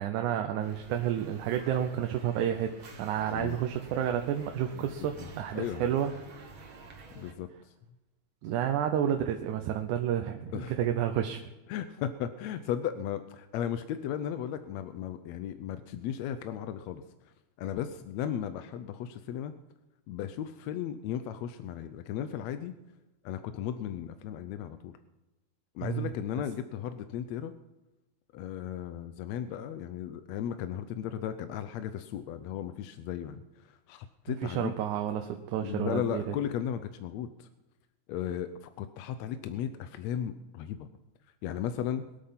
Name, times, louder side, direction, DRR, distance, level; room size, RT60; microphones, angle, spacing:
voice 1, 0.0-6.1 8.4-11.5 25.8-26.1 34.4-36.4, right 10 dB, 85° right, 5 dB, 2.3 m, -30 dB
sound 1, 0.6-7.3, right 4 dB, 50° right, 2.2 m, -49 dB
voice 2, 4.7-5.3 5.6-5.9 7.2-7.5 10.5-10.7 11.7-17.0 17.6-19.5 20.1-22.7 23.2-24.9 25.8-27.5 28.3-33.4 33.9-34.7 35.6-37.5 38.1-40.9 41.4-42.0, left 9 dB, 75° left, 10 dB, 1.8 m, -35 dB
22.0 x 8.7 x 5.8 m, 1.0 s
omnidirectional pair, 3.4 m